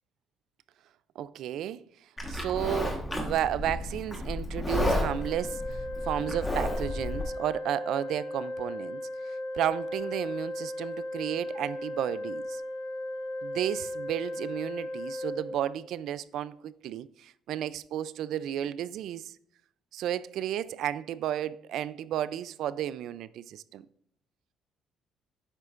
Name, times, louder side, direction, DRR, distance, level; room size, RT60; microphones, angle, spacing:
voice 1, 1.2-1.8 2.3-12.6 13.4-19.3 19.9-23.8, right 11 dB, 60° right, 0.3 m, -33 dB
Livestock farm animals working animals, 2.2-7.2, left 1 dB, 10° left, 1.3 m, -32 dB
Organ, 5.0-16.1, left 1 dB, 40° left, 1.9 m, -36 dB
10.5 x 8.0 x 2.5 m
cardioid pair, 175°, 0 cm